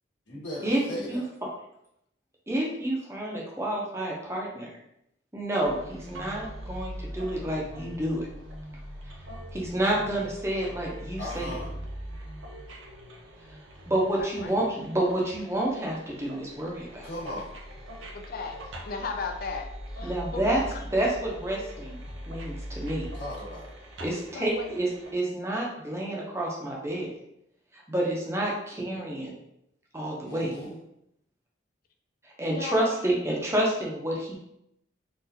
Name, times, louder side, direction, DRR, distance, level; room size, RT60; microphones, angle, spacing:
voice 1, 0.3-1.3 11.2-11.7 17.0-17.5 23.1-23.7 30.2-30.8, left 1 dB, 75° left, -8 dB, 1.2 m, -37 dB
voice 2, 2.5-4.7 5.3-8.3 9.5-11.5 13.9-17.1 20.0-20.6 20.9-22.0 22.3-23.1 24.0-27.1 27.7-29.3 29.9-30.5 32.2-34.4, right 1 dB, 15° right, -3 dB, 0.6 m, -29 dB
sound 1, 5.6-25.1, equal, 80° right, 0.6 m, -41 dB
voice 3, 14.2-14.6 18.1-20.8 24.3-24.7 32.5-32.9, left 4 dB, 50° left, 5 dB, 0.4 m, -36 dB
3.9 x 2.4 x 2.7 m, 0.79 s
head